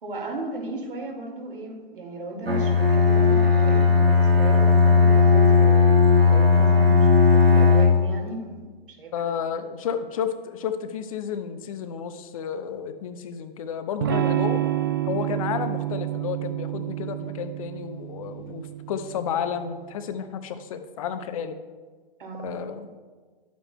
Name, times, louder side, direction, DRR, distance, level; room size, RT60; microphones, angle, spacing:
voice 1, 0.0-8.6 8.9-9.3 22.2-22.5, right 2 dB, 65° right, 1 dB, 2.0 m, -36 dB
Bowed string instrument, 2.5-8.1, left 4 dB, 85° right, 1.2 m, -17 dB
voice 2, 9.1-14.7 15.0-21.6 22.4-22.9, left 8 dB, 35° left, 9 dB, 0.7 m, -32 dB
Electric guitar / Strum, 14.0-19.7, right 12 dB, 25° right, 0.3 m, -29 dB
12.0 x 8.2 x 2.2 m, 1.4 s
figure-of-eight pair, 115°, 29 cm